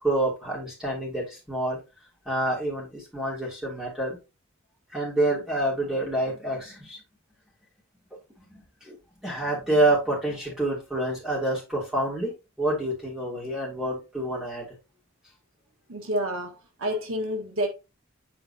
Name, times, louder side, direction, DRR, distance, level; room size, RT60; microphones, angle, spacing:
voice 1, 0.0-1.8 2.2-4.2 4.9-7.0 8.8-12.3 12.6-14.7, right 1 dB, 5° right, 2.9 m, -27 dB
voice 2, 15.9-17.7, equal, 75° right, 1.5 m, -29 dB
7.7 x 4.6 x 2.8 m
head